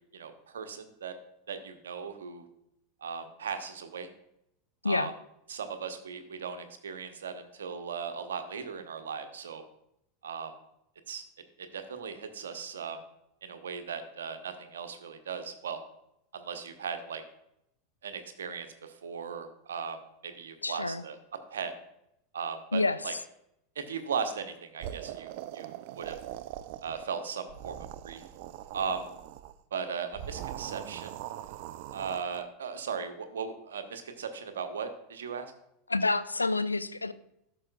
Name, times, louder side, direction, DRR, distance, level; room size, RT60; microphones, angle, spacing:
voice 1, 0.1-1.1 1.5-2.4 3.0-4.1 4.8-5.1 5.5-9.6 10.2-10.5 11.1-11.2 11.6-13.0 13.4-15.8 16.3-17.2 18.0-21.2 21.5-21.7 22.3-23.1 23.8-26.2 26.8-27.8 28.0-28.2 28.7-29.1 29.7-31.1 31.9-35.5, right 6 dB, 70° right, 7 dB, 0.9 m, -37 dB
voice 2, 20.6-21.0 22.7-23.2 35.9-37.1, left 3 dB, 80° left, 13 dB, 0.4 m, -28 dB
sound 1, 24.8-27.1 27.4-29.6 30.1-32.4, right 12 dB, 50° right, 0.3 m, -42 dB
13.0 x 6.4 x 2.3 m, 0.79 s
figure-of-eight pair, 85°, 0 cm